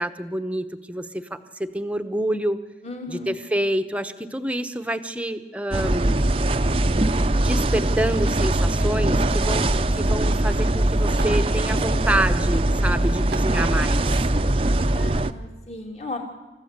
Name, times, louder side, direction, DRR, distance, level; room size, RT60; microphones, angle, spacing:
voice 1, 0.0-2.6 3.1-6.2 7.4-14.2, right 1 dB, 5° right, 8 dB, 0.9 m, -27 dB
voice 2, 2.8-3.4 14.9-16.2, left 2 dB, 35° left, 2 dB, 2.6 m, -35 dB
sound 1, 5.7-15.3, right 1 dB, 30° right, 0.7 m, -21 dB
sound 2, 8.8-9.1 10.0-10.1 10.3-10.4 11.1-11.4 12.1-12.3 12.8-12.9 13.3-13.6, right 4 dB, 60° right, 0.8 m, -40 dB
29.0 x 14.5 x 8.1 m, 1.2 s
head